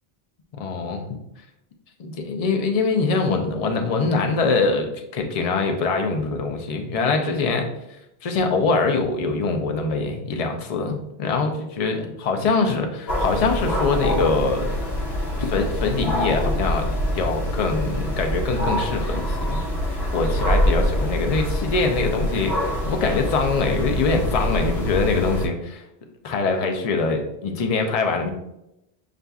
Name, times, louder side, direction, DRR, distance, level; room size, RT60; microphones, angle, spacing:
voice 1, 0.6-1.0 2.0-7.7 8.2-14.8 15.4-16.8 17.1-25.8 26.2-28.3, left 4 dB, 45° left, 4 dB, 0.5 m, -23 dB
sound 1, 13.1-25.5, left 1 dB, 75° left, 0.9 m, -25 dB
6.5 x 2.5 x 2.3 m, 0.86 s
omnidirectional pair, 1.1 m